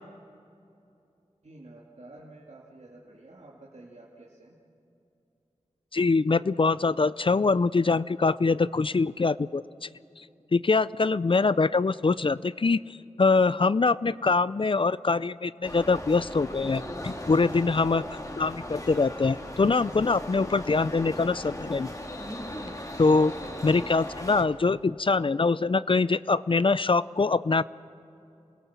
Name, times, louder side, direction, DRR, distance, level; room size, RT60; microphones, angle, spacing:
voice 1, 1.4-4.6 11.2-11.6 17.9-18.4 23.5-23.9, right 2 dB, 65° right, -4 dB, 2.4 m, -50 dB
voice 2, 5.9-9.6 10.5-12.8 13.2-18.0 18.4-21.9 23.0-23.3 23.6-27.6, left 4 dB, 45° left, 18 dB, 0.4 m, -24 dB
sound 1, 15.6-24.4, left 1 dB, 25° left, 2.4 m, -38 dB
27.0 x 17.5 x 7.3 m, 2.7 s
cardioid pair, 40°, 12 cm